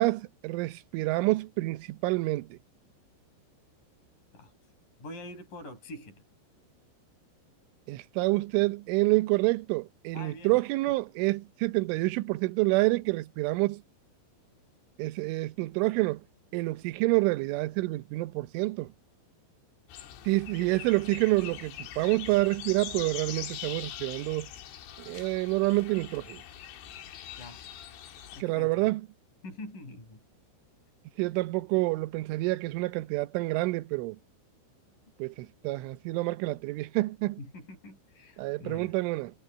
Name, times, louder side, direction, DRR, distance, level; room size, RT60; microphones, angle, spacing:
voice 1, 0.0-2.6 7.9-13.8 15.0-16.2 16.5-18.9 20.3-24.5 25.1-26.4 28.4-29.1 31.2-34.2 35.2-37.4 38.4-39.3, right 21 dB, 85° right, 3.4 m, -28 dB
voice 2, 5.0-6.2 10.1-10.6 27.4-27.7 28.4-28.9 29.4-30.2 37.4-39.0, left 2 dB, 45° left, 9.4 m, -44 dB
sound 1, 19.9-28.4, left 10 dB, 85° left, 4.6 m, -43 dB
omnidirectional pair, 5.5 m